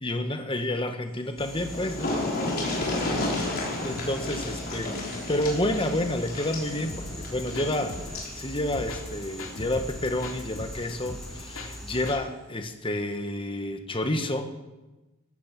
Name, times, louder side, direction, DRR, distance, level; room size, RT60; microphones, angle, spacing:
voice 1, 0.0-2.2 3.8-14.5, left 1 dB, 25° left, 6 dB, 1.3 m, -30 dB
sound 1, 1.2-1.3 1.5-8.4 9.7-9.8 10.2-10.3, left 2 dB, 45° left, 5.1 m, -32 dB
sound 2, 1.4-12.1, equal, ahead, 5.4 m, -42 dB
sound 3, 6.9-12.2, left 2 dB, 75° left, 2.4 m, -40 dB
16.0 x 15.0 x 6.0 m, 1.1 s
head